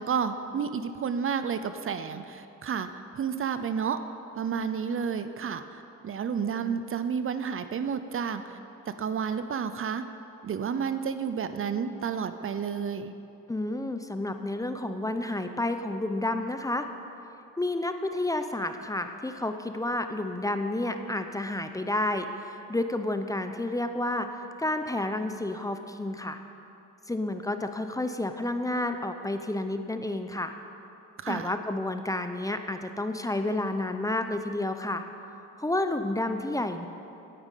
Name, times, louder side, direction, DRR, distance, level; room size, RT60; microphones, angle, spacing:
voice 1, 0.0-2.9 3.2-4.0 4.3-8.6 8.9-10.0 10.4-13.1 31.2-31.5, right 7 dB, 45° right, 10 dB, 0.6 m, -31 dB
voice 2, 13.5-16.9 17.6-26.4 27.1-30.5 31.3-35.0 35.4-36.9, left 1 dB, 10° left, 7 dB, 0.7 m, -30 dB
9.3 x 8.9 x 8.3 m, 2.8 s
cardioid pair, 90°, 30 cm